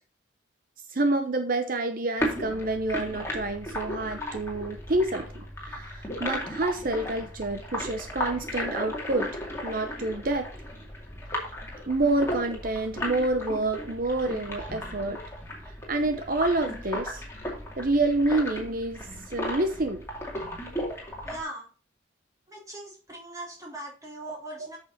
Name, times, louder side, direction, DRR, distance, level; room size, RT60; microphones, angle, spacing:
voice 1, 0.9-9.3 9.6-10.5 11.9-15.2 15.7-17.2 17.8-20.0 24.6-24.8, right 2 dB, 45° right, 7 dB, 0.8 m, -28 dB
sound 1, 2.2-21.4, equal, 15° left, 2.4 m, -35 dB
voice 2, 21.2-21.7 22.5-24.8, right 1 dB, 15° right, -3 dB, 4.0 m, -40 dB
8.7 x 6.5 x 4.1 m, 0.38 s
head